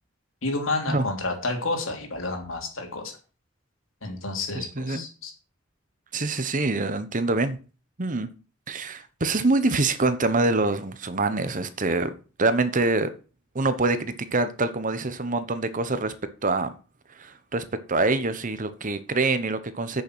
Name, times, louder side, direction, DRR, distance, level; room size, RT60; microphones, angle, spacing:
voice 1, 0.4-3.1 4.0-5.3, left 2 dB, 90° left, 3.1 m, -30 dB
voice 2, 4.5-5.1 6.1-7.6 8.0-8.3 8.7-12.1 12.4-13.1 13.5-16.1 16.4-16.7 17.1-20.0, right 3 dB, 40° right, 1.0 m, -25 dB
8.9 x 6.6 x 6.3 m
head